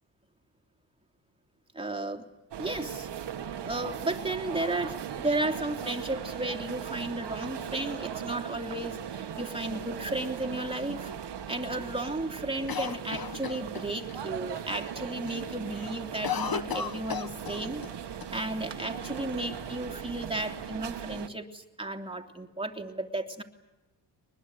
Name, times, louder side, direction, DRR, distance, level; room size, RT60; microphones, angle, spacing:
voice 1, 1.7-2.2 2.6-3.1 3.6-11.1 11.5-17.8 18.3-23.4, right 2 dB, 10° right, 3 dB, 2.9 m, -34 dB
sound 1, 2.5-21.3, right 8 dB, 65° right, 1.7 m, -38 dB
Cough, 12.7-14.2 14.6-14.7 15.0-15.4 15.7-17.9 18.2-18.3 19.0-19.8, left 7 dB, 50° left, 1.7 m, -35 dB
23.5 x 21.0 x 9.7 m, 1.1 s
cardioid pair, 65°, 45 cm